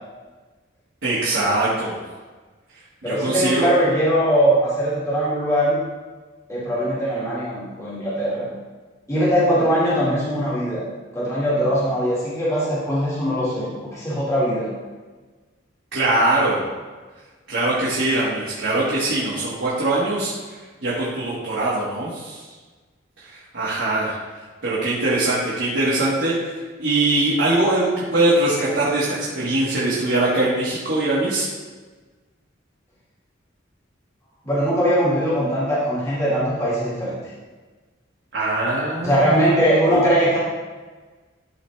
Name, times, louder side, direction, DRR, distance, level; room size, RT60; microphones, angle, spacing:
voice 1, 1.0-2.0 3.0-3.7 15.9-16.7 17.5-20.3 20.8-22.4 23.2-24.2 24.6-26.4 26.8-31.5 38.3-39.4, right 2 dB, 70° right, -9 dB, 1.7 m, -22 dB
voice 2, 3.0-5.8 6.5-8.4 9.1-10.8 11.1-14.7 34.4-37.2 39.0-40.4, equal, 15° left, -9 dB, 2.1 m, -21 dB
12.5 x 4.1 x 3.3 m, 1.3 s
head